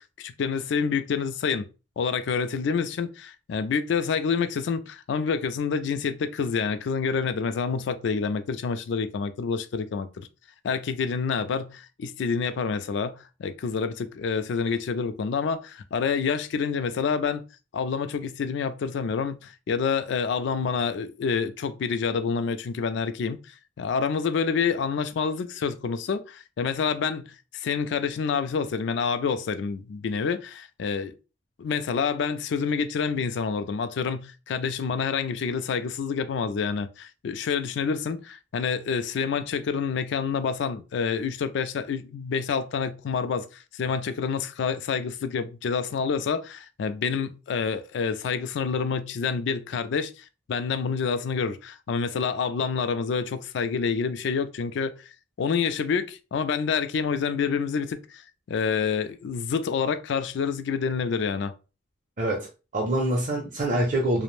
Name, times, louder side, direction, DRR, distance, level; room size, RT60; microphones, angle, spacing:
voice 1, 0.2-1.7 2.0-10.3 10.6-17.4 17.7-23.4 23.8-31.1 31.6-55.1 55.4-58.2 58.5-61.5, left 5 dB, 65° left, 0.3 m, -28 dB
voice 2, 62.2-64.2, right 1 dB, 45° right, 0.6 m, -25 dB
2.4 x 2.0 x 3.1 m
head